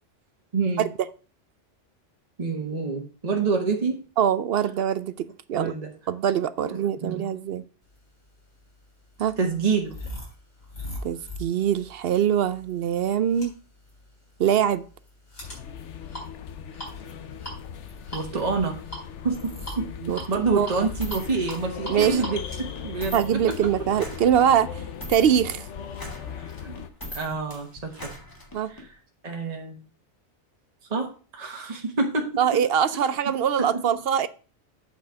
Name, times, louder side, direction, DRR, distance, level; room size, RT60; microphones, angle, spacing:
voice 1, 0.5-0.8 2.4-4.0 5.5-5.9 6.6-7.3 9.4-9.9 18.1-18.7 19.2-19.9 20.3-23.5 26.4-26.8 27.1-28.1 28.8-28.9 29.2-29.8 30.9-32.3 33.6-33.8, right 4 dB, 35° right, 1.3 m, -27 dB
voice 2, 4.2-5.7 6.1-7.6 9.2-9.4 11.0-13.5 14.4-14.8 20.0-20.2 20.6-20.7 21.9-22.2 23.1-24.8 25.1-25.7 28.5-28.7 32.4-34.3, right 9 dB, 60° right, 0.7 m, -23 dB
sound 1, 8.3-23.9, left 1 dB, 55° left, 4.5 m, -41 dB
sound 2, 15.4-26.9, left 8 dB, 75° left, 1.1 m, -39 dB
sound 3, 21.0-28.9, left 1 dB, 15° left, 1.6 m, -41 dB
8.3 x 4.4 x 6.3 m
omnidirectional pair, 1.2 m